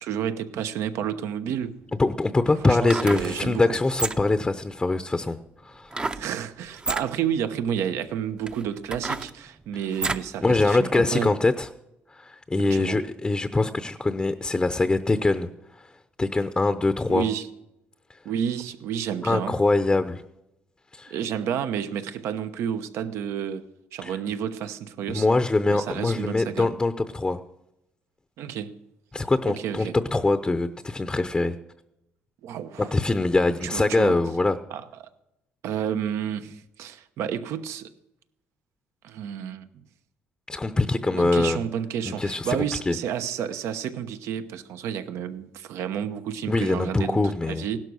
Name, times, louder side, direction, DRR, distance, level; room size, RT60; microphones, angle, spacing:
voice 1, 0.0-1.8 2.6-3.6 6.0-11.3 12.6-13.0 17.1-17.5 18.2-19.6 21.1-23.6 23.9-25.3 25.7-26.7 28.4-28.8 29.4-29.9 32.4-32.9 33.6-34.2 34.7-34.8 35.6-37.9 39.0-39.8 41.1-47.8, right 9 dB, 80° right, 1.0 m, -30 dB
sound 1, 1.6-1.7 2.7-3.3 3.9-4.4 5.9-6.3 6.7-7.1 7.8-7.9 8.4-10.3 10.8-10.9, right 3 dB, 20° right, 0.7 m, -30 dB
voice 2, 2.0-5.4 5.6-6.0 10.4-11.7 12.1-15.5 15.8-15.9 16.2-17.3 19.2-20.2 20.9-21.1 24.0-24.1 25.1-27.4 29.1-31.6 32.8-34.6 40.5-41.6 42.0-42.6 42.9-43.0 46.5-47.6, left 2 dB, 15° left, 0.7 m, -23 dB
17.0 x 12.0 x 6.3 m
cardioid pair, 105°, 5 cm